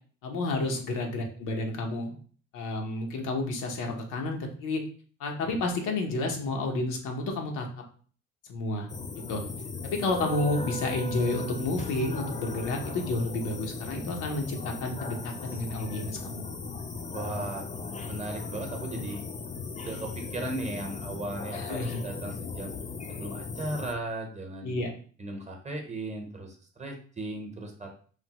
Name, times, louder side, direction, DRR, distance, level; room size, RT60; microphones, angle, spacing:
voice 1, 0.2-2.1 2.5-4.8 5.2-7.7 8.5-8.9 9.3-9.4 9.8-16.5 18.9-19.1 21.5-22.1 24.6-24.9, left 2 dB, 90° left, 2 dB, 0.7 m, -30 dB
sound 1, 8.9-23.9, left 4 dB, 25° left, 0.4 m, -37 dB
voice 2, 17.1-17.6 18.1-19.2 19.8-22.7 23.1-24.8 25.2-28.0, right 2 dB, 25° right, 2 dB, 0.7 m, -37 dB
3.3 x 2.0 x 2.8 m, 0.43 s
cardioid pair, 90°, 30 cm